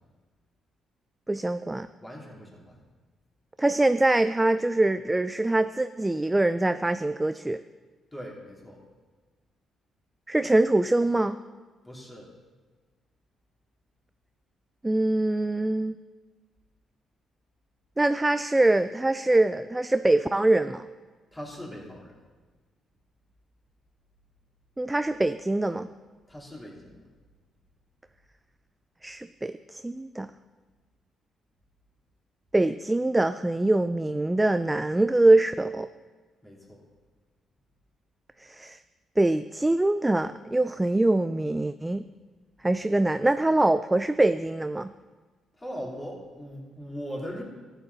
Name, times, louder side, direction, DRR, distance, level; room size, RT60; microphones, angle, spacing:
voice 1, 1.3-1.9 3.6-7.6 10.3-11.4 14.8-15.9 18.0-20.8 24.8-25.9 29.0-30.3 32.5-35.9 38.4-38.8 39.2-42.0 42.6-44.9, right 2 dB, 15° right, 11 dB, 0.3 m, -24 dB
voice 2, 2.0-2.8 8.1-8.8 11.8-12.3 21.3-22.1 26.3-27.0 36.4-36.8 45.6-47.4, equal, 15° left, -3 dB, 3.0 m, -40 dB
14.0 x 8.1 x 4.1 m, 1.4 s
cardioid pair, 90°, 0 cm